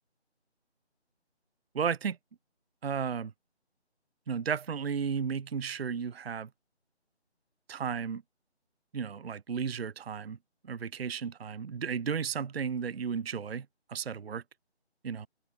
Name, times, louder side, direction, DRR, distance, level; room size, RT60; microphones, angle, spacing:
voice 1, 1.7-2.2 2.8-3.3 4.3-6.5 7.7-8.2 8.9-10.4 10.6-14.4 15.0-15.3, right 6 dB, 60° right, 0.5 m, -34 dB
figure-of-eight pair, 160°, 34 cm